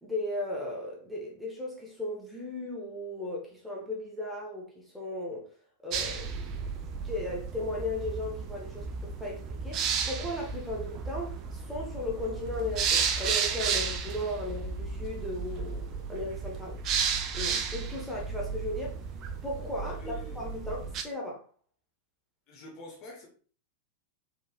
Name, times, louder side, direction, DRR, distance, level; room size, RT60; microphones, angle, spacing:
voice 1, 0.0-5.5 5.8-6.5 7.0-16.8 17.3-19.0 19.4-21.4, left 1 dB, ahead, 1.0 m, -36 dB
sound 1, 5.9-21.0, right 6 dB, 35° right, 0.5 m, -33 dB
voice 2, 19.8-20.4 22.5-23.3, left 1 dB, 40° left, 1.4 m, -46 dB
4.6 x 3.5 x 2.4 m
figure-of-eight pair, 90°, 0 cm